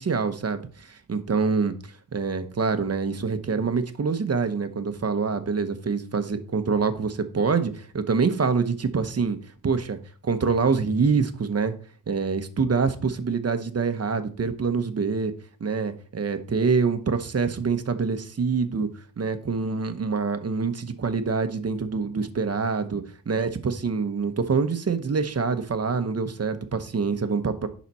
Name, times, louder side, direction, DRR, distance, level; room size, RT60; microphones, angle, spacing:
voice 1, 0.0-1.8 2.1-9.4 9.6-10.0 10.2-11.7 12.1-15.3 15.6-18.9 19.2-27.7, right 5 dB, 40° right, 9 dB, 0.9 m, -25 dB
10.5 x 4.1 x 4.2 m, 0.42 s
wide cardioid pair, 95°, 38 cm